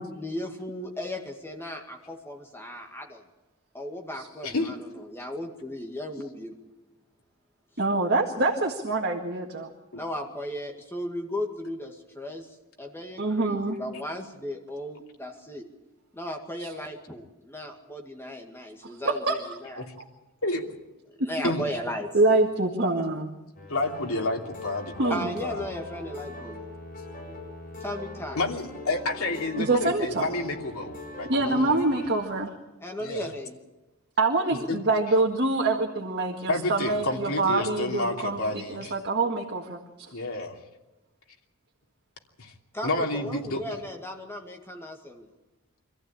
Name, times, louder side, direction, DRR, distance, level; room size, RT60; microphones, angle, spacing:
voice 1, 0.1-3.2 3.7-6.6 9.9-15.7 16.1-19.9 21.1-22.2 25.1-26.7 27.8-28.4 32.8-33.6 42.7-45.3, left 1 dB, 10° left, 3 dB, 2.1 m, -36 dB
voice 2, 7.8-9.7 13.2-13.8 18.8-19.0 19.3-19.4 21.2-21.3 22.1-23.3 25.0-25.3 29.6-30.2 31.2-32.5 34.2-38.4 38.7-40.1, right 2 dB, 50° right, 1 dB, 1.9 m, -25 dB
sound 1, 23.5-32.3, left 1 dB, 40° left, 7.3 m, -41 dB
voice 3, 23.7-25.1 25.4-25.6 28.4-32.0 33.0-33.3 34.7-34.8 36.5-38.9 40.1-40.5 42.4-42.5 42.8-43.6, left 2 dB, 80° left, 2 dB, 2.9 m, -30 dB
25.5 x 14.5 x 8.8 m, 1.1 s
head